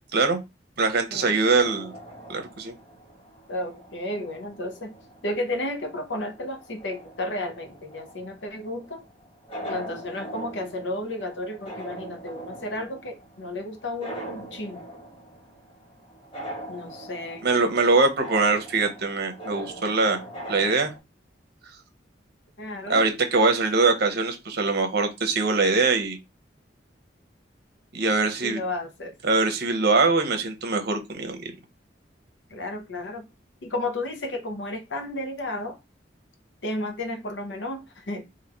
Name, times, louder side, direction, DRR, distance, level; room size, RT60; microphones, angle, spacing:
voice 1, 0.8-1.9 2.3-2.7 17.4-20.2 20.5-20.9 22.9-26.2 27.9-28.6 29.2-31.5, right 3 dB, 60° right, 0.9 m, -22 dB
sound 1, 1.6-21.0, right 1 dB, 30° left, 1.5 m, -42 dB
voice 2, 3.5-4.9 5.2-9.0 9.7-14.9 16.7-17.4 22.6-23.0 28.4-29.1 32.5-33.3 33.6-35.8 36.6-38.3, left 1 dB, 75° left, 0.9 m, -33 dB
3.9 x 2.6 x 3.0 m
head